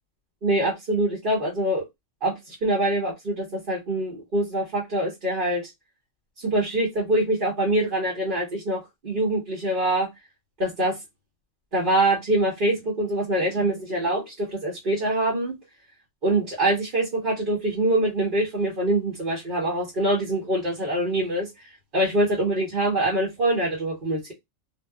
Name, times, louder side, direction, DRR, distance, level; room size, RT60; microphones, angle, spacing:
voice 1, 0.4-1.9 2.2-5.7 6.4-10.1 10.6-11.0 11.7-15.5 16.2-21.5 21.9-24.3, right 1 dB, 45° right, 1.1 m, -24 dB
2.7 x 2.3 x 2.2 m
omnidirectional pair, 1.4 m